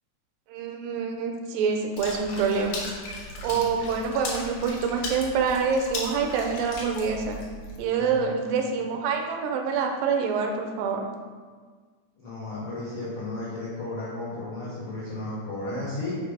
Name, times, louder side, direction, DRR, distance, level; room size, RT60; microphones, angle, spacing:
voice 1, 0.5-2.8 3.4-7.4 7.8-11.1, right 5 dB, 80° right, 3 dB, 2.1 m, -26 dB
Water / Splash splatter, 2.0-7.8, left 2 dB, 65° left, 2.0 m, -37 dB
voice 2, 3.4-3.8 7.9-8.3 12.2-16.2, left 2 dB, 85° left, -8 dB, 1.2 m, -34 dB
6.5 x 3.0 x 4.9 m, 1.5 s
omnidirectional pair, 4.1 m